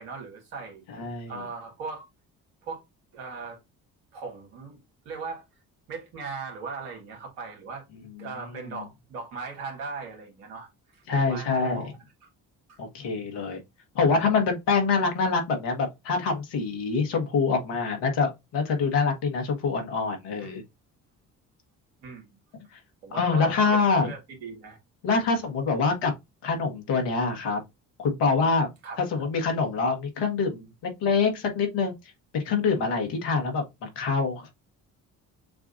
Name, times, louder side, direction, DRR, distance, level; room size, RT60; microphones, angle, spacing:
voice 1, 0.0-0.8 1.3-2.1 2.6-2.8 3.1-3.6 4.1-4.8 5.1-5.4 5.9-7.8 8.2-10.7 11.1-11.9 12.7-12.8 20.4-20.5 22.0-22.3 23.0-24.8 25.1-25.3 28.8-29.0, right 4 dB, 85° right, 1.9 m, -38 dB
voice 2, 0.9-1.5 8.2-8.8 11.1-11.9 12.8-13.6 14.0-20.6 22.7-22.8 23.1-24.1 25.0-26.1 26.4-27.6 28.0-28.7 29.0-30.7 31.0-34.5, left 4 dB, 75° left, 1.8 m, -25 dB
6.8 x 2.5 x 2.6 m
hypercardioid pair, 50°, 42 cm